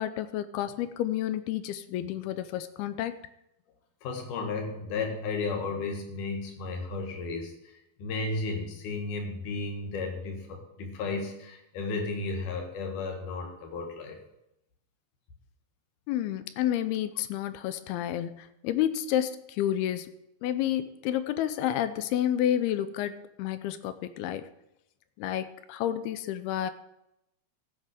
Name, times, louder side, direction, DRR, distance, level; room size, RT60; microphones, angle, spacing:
voice 1, 0.0-3.1 16.1-20.1 20.4-24.5 25.2-26.7, left 11 dB, 90° left, 12 dB, 2.7 m, -30 dB
voice 2, 4.0-7.5 8.0-14.2, left 3 dB, 60° left, 3 dB, 3.1 m, -33 dB
14.5 x 5.9 x 6.6 m, 0.84 s
omnidirectional pair, 4.4 m